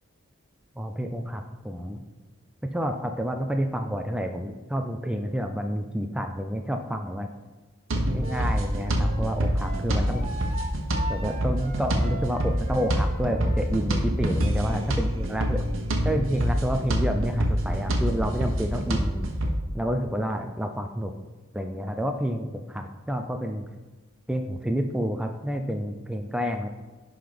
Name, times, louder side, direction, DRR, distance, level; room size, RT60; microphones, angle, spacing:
voice 1, 0.8-2.0 2.6-7.3 8.0-10.3 11.1-15.7 16.0-19.3 19.7-21.1 21.5-23.7 24.3-26.7, equal, 5° right, 4 dB, 0.4 m, -29 dB
sound 1, 7.9-19.5, equal, 75° right, 1.1 m, -26 dB
Wind instrument woodwind instrument, 8.2-13.6, right 2 dB, 30° right, 1.4 m, -39 dB
10.5 x 3.9 x 5.1 m, 1.3 s
head